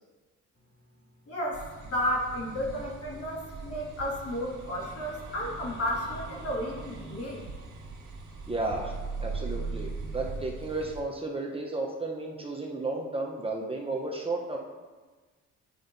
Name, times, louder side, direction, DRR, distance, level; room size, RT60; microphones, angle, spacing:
voice 1, 1.3-7.4, equal, 50° left, -3 dB, 1.9 m, -32 dB
sound 1, 1.5-11.0, right 4 dB, 75° right, 1.7 m, -40 dB
voice 2, 8.5-14.6, right 2 dB, 20° right, -1 dB, 0.8 m, -33 dB
9.3 x 5.3 x 2.6 m, 1.3 s
cardioid pair, 90°, 30 cm